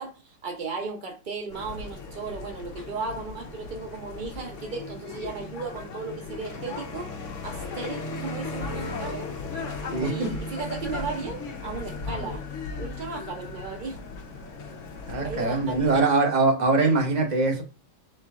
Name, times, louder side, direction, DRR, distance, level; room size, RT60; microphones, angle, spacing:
voice 1, 0.0-7.1 7.4-9.3 10.0-12.4 12.8-14.0 15.2-16.0, right 4 dB, 85° right, 0.4 m, -35 dB
sound 1, 1.5-16.0, left 3 dB, 55° left, 0.9 m, -36 dB
voice 2, 9.9-10.4 15.1-17.6, right 3 dB, 40° right, 0.6 m, -23 dB
4.3 x 3.1 x 3.6 m
omnidirectional pair, 2.0 m